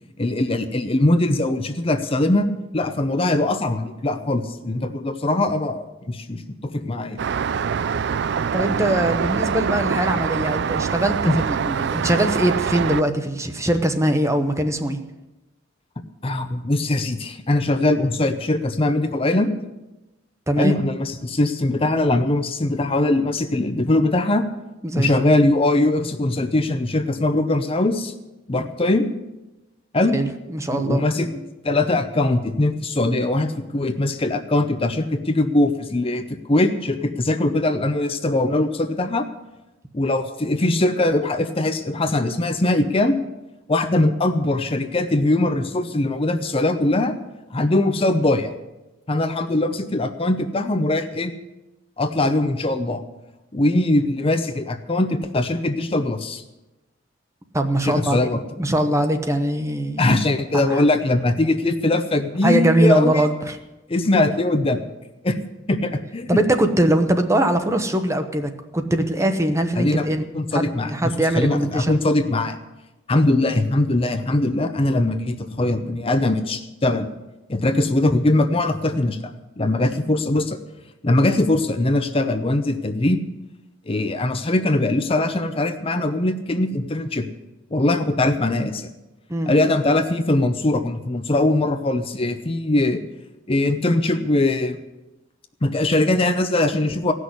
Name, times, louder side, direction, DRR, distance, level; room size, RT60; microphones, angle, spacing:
voice 1, 0.2-2.5 2.7-6.4 6.7-7.2 11.2-11.4 16.2-19.5 20.6-24.4 24.9-28.1 28.5-29.1 29.9-30.2 30.7-39.3 39.9-43.2 43.7-47.1 47.5-48.5 49.1-51.3 52.0-53.0 53.5-56.4 57.8-58.4 60.0-63.3 63.9-64.8 65.2-65.4 65.7-66.4 69.8-70.1 70.3-72.6 73.1-77.1 77.5-79.3 79.6-80.6 81.0-83.2 83.9-87.3 87.7-88.9 89.5-93.0 93.5-94.8 95.6-97.1, left 2 dB, 30° left, 8 dB, 0.7 m, -21 dB
Traffic noise roadway noise, 7.2-13.0, right 6 dB, 55° right, 0.4 m, -24 dB
voice 2, 8.5-15.0 20.5-20.8 24.8-25.1 30.1-31.0 57.5-58.2 58.6-60.1 60.7-60.8 62.4-63.6 66.3-70.2 70.5-72.0 89.3-89.5, right 1 dB, 15° right, 7 dB, 0.9 m, -21 dB
16.5 x 6.4 x 9.5 m, 1.0 s
head